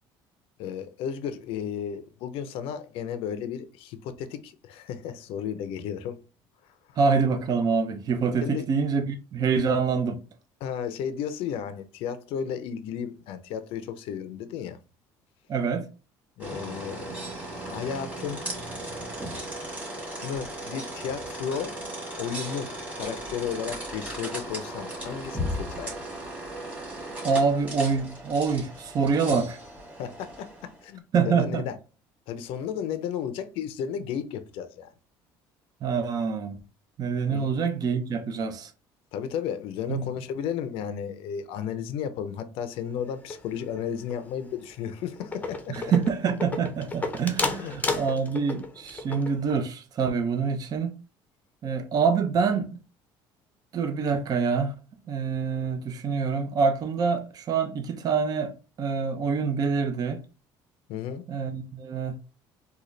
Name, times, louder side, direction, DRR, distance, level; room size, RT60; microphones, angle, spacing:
voice 1, 0.6-6.2 8.4-8.6 10.6-14.8 16.4-17.1 17.5-18.4 20.2-21.8 22.2-25.9 30.0-30.5 30.8-31.8 32.3-34.9 37.3-37.6 39.1-45.8 47.6-47.7 60.9-61.3, left 8 dB, 70° left, 0.5 m, -33 dB
voice 2, 7.0-10.2 15.5-15.9 27.2-29.5 31.1-31.6 35.8-36.6 37.0-38.7 39.9-40.1 45.7-50.9 51.6-52.7 53.7-54.7 55.1-58.5 58.8-60.2 61.3-62.2, right 5 dB, 40° right, 0.6 m, -26 dB
sound 1, 16.4-30.8, right 1 dB, 15° right, 1.9 m, -36 dB
sound 2, 43.1-43.8 44.1-44.4 44.8-44.9 45.2-49.6, left 3 dB, 15° left, 0.6 m, -32 dB
3.8 x 2.3 x 3.1 m
cardioid pair, 110°, 10 cm